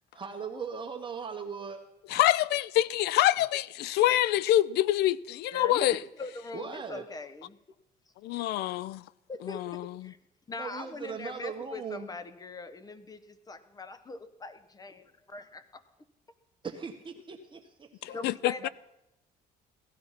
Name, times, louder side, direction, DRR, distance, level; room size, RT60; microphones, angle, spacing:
voice 1, 0.2-1.8 6.5-7.1 10.5-12.1 16.6-18.2 18.6-18.7, right 6 dB, 30° right, 1.3 m, -39 dB
voice 2, 2.1-6.0 8.2-9.0 9.4-10.1 18.0-18.7, left 14 dB, 75° left, 0.5 m, -26 dB
voice 3, 5.5-7.6 9.3-9.6 10.0-10.2 10.5-15.6 18.1-18.7, left 3 dB, 20° left, 1.1 m, -41 dB
16.5 x 12.0 x 5.8 m
cardioid pair, 110°, 17 cm